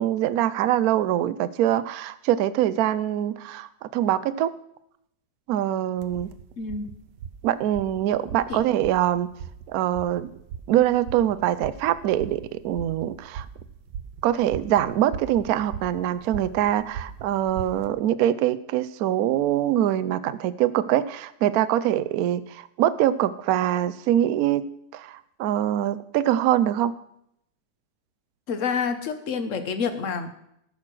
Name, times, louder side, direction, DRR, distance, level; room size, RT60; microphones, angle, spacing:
voice 1, 0.0-4.5 5.5-6.3 7.4-9.3 9.7-10.3 10.7-13.5 14.2-24.7 24.9-26.9, right 12 dB, 70° right, 15 dB, 1.0 m, -24 dB
sound 1, 6.0-17.9, right 7 dB, 85° right, 1.4 m, -40 dB
voice 2, 6.6-6.9 8.5-8.6 28.5-30.3, left 5 dB, 50° left, 9 dB, 1.2 m, -28 dB
13.5 x 6.5 x 6.0 m, 0.75 s
omnidirectional pair, 1.9 m